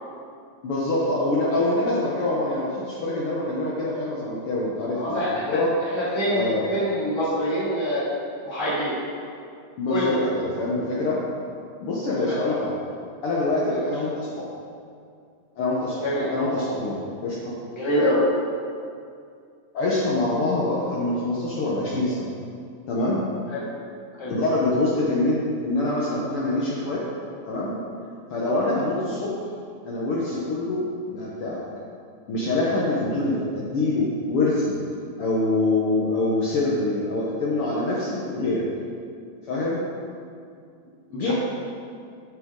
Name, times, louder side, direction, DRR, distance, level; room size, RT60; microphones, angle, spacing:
voice 1, 0.6-5.7 6.3-6.6 9.8-11.2 11.8-12.7 13.2-14.5 15.6-17.5 19.7-22.3 22.9-23.2 24.2-27.0 27.4-27.8 28.3-29.3 29.8-31.6 32.3-34.7 35.2-38.6 39.5-39.8 41.1-41.3, left 2 dB, 90° left, -6 dB, 1.2 m, -25 dB
voice 2, 4.9-5.6 5.9-8.0 8.4-9.0 9.9-10.3 12.2-12.4 13.6-13.9 16.0-16.3 17.7-18.2 23.5-23.7 24.2-24.3 33.1-33.2 41.1-41.3, equal, 10° left, -8 dB, 1.3 m, -26 dB
9.0 x 6.1 x 3.7 m, 2.3 s
omnidirectional pair, 3.9 m